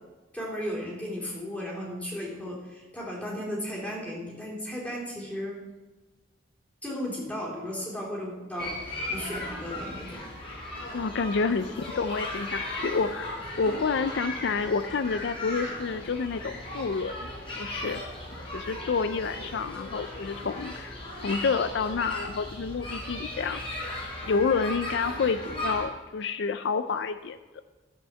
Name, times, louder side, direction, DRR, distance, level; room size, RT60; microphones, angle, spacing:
voice 1, 0.3-5.6 6.8-8.7 9.1-10.2, equal, 10° left, -5 dB, 3.9 m, -35 dB
sound 1, 8.6-25.9, left 1 dB, 30° left, 4.7 m, -37 dB
voice 2, 10.9-11.7 12.0-17.3 17.6-18.0 18.5-23.6 24.2-27.4, left 5 dB, 65° left, 11 dB, 0.4 m, -29 dB
13.5 x 5.6 x 7.3 m, 1.2 s
head